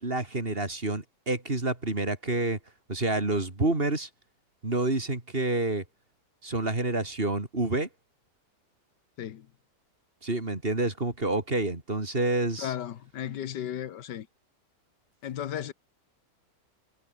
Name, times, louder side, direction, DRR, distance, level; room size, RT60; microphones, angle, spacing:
voice 1, 0.0-2.6 2.9-4.1 4.6-5.8 6.4-7.9 10.2-12.7, right 2 dB, 35° right, 3.5 m, -28 dB
voice 2, 12.6-14.3 15.2-15.7, left 10 dB, 80° left, 1.7 m, -35 dB
omnidirectional pair, 1.8 m